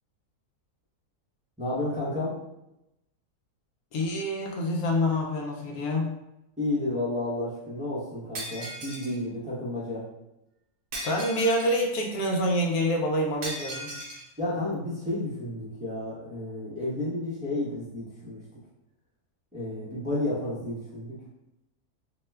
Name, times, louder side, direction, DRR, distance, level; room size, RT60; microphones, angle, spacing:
voice 1, 1.6-2.3 6.6-10.0 14.4-18.4 19.5-21.2, left 2 dB, 10° right, -8 dB, 0.4 m, -31 dB
voice 2, 3.9-6.1 11.0-13.9, equal, 75° left, 1 dB, 1.0 m, -26 dB
Shatter, 8.3-9.2 10.9-11.8 13.4-14.2, right 1 dB, 65° right, 1.1 m, -37 dB
2.9 x 2.1 x 3.3 m, 0.88 s
omnidirectional pair, 1.6 m